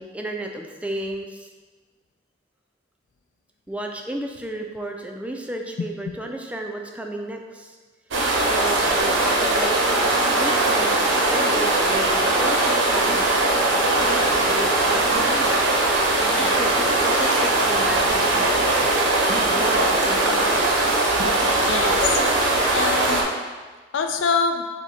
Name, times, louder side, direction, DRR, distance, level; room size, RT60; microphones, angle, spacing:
voice 1, 0.0-1.5 3.7-7.8 8.4-13.4 14.0-15.6 16.2-18.5 19.4-20.7, right 1 dB, 5° right, 2 dB, 0.3 m, -33 dB
voice 2, 5.8-6.2 16.3-16.6 21.7-22.0 22.7-23.3 23.9-24.6, left 4 dB, 90° left, 6 dB, 0.4 m, -25 dB
sound 1, 8.1-23.2, right 2 dB, 75° right, 0.7 m, -20 dB
6.2 x 2.2 x 4.0 m, 1.4 s
head